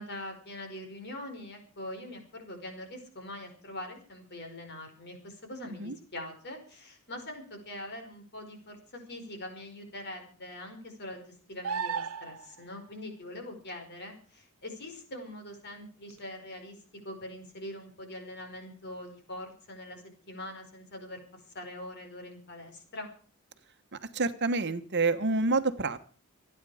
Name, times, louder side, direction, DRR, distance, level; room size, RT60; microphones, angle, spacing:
voice 1, 0.0-16.8 17.0-23.1, left 1 dB, 50° left, 5 dB, 5.1 m, -43 dB
sound 1, 11.6-12.6 16.1-16.2, right 6 dB, 75° right, 0.8 m, -33 dB
voice 2, 24.1-26.0, right 3 dB, 55° right, 9 dB, 1.2 m, -27 dB
26.5 x 9.8 x 5.0 m, 0.43 s
head